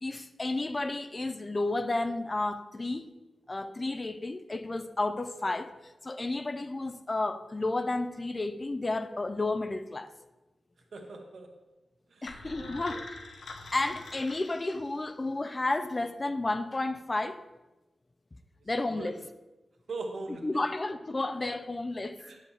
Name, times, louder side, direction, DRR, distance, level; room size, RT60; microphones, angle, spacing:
voice 1, 0.0-3.1 3.5-5.7 6.0-10.1 12.2-13.0 13.7-17.4 18.7-19.2 20.4-22.2, left 2 dB, 25° left, 0.5 m, -32 dB
voice 2, 10.9-11.6 12.1-12.3 12.5-13.0 13.7-13.9 18.6-19.1 19.9-20.7 22.2-22.4, right 3 dB, 75° right, 1.3 m, -41 dB
sound 1, 12.3-15.3, left 3 dB, 85° left, 0.9 m, -45 dB
9.8 x 3.7 x 7.1 m
wide cardioid pair, 130°, 0 cm